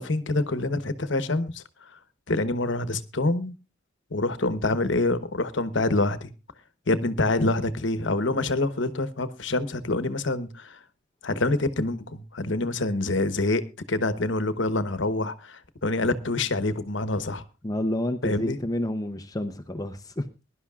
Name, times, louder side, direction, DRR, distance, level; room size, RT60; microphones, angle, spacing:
voice 1, 0.0-1.6 2.3-3.5 4.1-6.3 6.9-10.8 11.2-13.6 13.9-17.4 18.2-18.6, left 2 dB, 70° left, 12 dB, 1.1 m, -26 dB
voice 2, 17.6-20.2, left 1 dB, 20° left, 8 dB, 0.8 m, -29 dB
22.0 x 11.5 x 2.4 m, 0.28 s
head